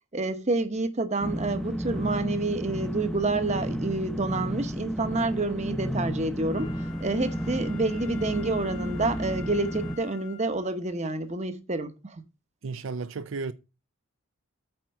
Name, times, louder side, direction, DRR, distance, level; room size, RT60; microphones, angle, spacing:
voice 1, 0.1-12.2, right 2 dB, 30° right, 0.9 m, -28 dB
sound 1, 1.2-10.0, equal, ahead, 0.6 m, -32 dB
Wind instrument woodwind instrument, 6.5-10.8 11.3-11.4, left 10 dB, 80° left, 1.8 m, -47 dB
voice 2, 12.6-13.5, right 4 dB, 70° right, 0.5 m, -33 dB
8.9 x 4.4 x 6.5 m
head